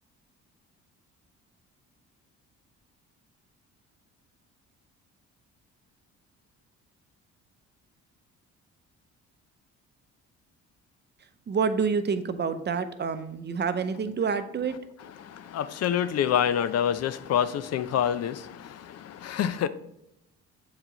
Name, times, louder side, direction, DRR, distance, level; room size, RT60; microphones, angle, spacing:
voice 1, 11.5-14.8, right 5 dB, 35° right, 10 dB, 0.6 m, -28 dB
voice 2, 15.2-19.7, left 9 dB, 60° left, 14 dB, 0.5 m, -27 dB
7.5 x 4.7 x 4.0 m, 0.82 s
cardioid pair, 105°, 30 cm